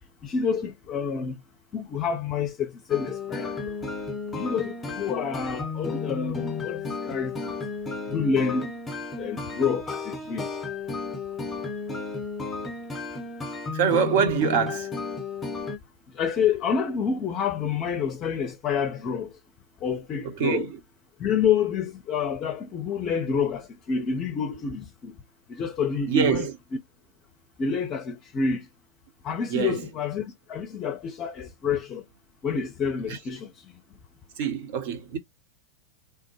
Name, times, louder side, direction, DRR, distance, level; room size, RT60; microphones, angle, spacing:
voice 1, 0.2-1.4 1.7-3.8 4.3-7.6 8.1-8.7 9.2-10.5 16.1-19.3 19.8-20.7 21.2-25.1 25.5-26.5 27.6-28.7 29.2-32.0 32.4-33.5, left 6 dB, 30° left, 0.5 m, -28 dB
sound 1, 2.9-15.8, left 4 dB, 15° left, 0.9 m, -33 dB
voice 2, 13.7-14.9 20.2-20.8 26.1-26.5 29.5-29.9 33.1-33.2 34.4-35.2, right 7 dB, 50° right, 0.9 m, -25 dB
3.3 x 2.1 x 3.0 m
figure-of-eight pair, 90°, 0 cm